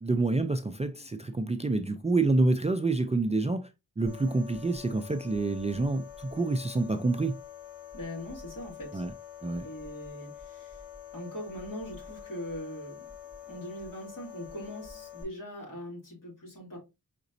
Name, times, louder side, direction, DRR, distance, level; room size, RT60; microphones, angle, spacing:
voice 1, 0.0-3.7 4.0-7.4 8.9-9.1 9.4-9.6, right 3 dB, 20° right, 0.4 m, -27 dB
sound 1, 4.1-15.2, left 8 dB, 25° left, 2.7 m, -46 dB
voice 2, 7.9-9.0 9.6-10.8 11.1-12.9 13.5-16.8, equal, 60° left, 2.8 m, -41 dB
5.1 x 3.9 x 2.6 m
wide cardioid pair, 85°, 37 cm